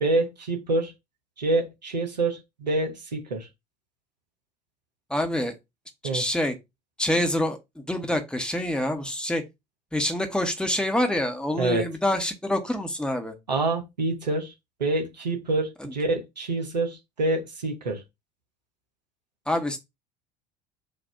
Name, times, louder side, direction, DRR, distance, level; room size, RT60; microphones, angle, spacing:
voice 1, 0.0-0.9 1.4-3.5 6.0-6.2 11.5-11.8 13.5-14.5 14.8-18.0, right 2 dB, 80° right, 0.9 m, -26 dB
voice 2, 5.1-5.5 6.1-6.5 7.0-7.6 7.9-9.4 9.9-13.3 15.8-15.9 19.5-19.8, left 1 dB, 5° left, 1.0 m, -26 dB
4.1 x 2.6 x 4.6 m
figure-of-eight pair, 65°, 21 cm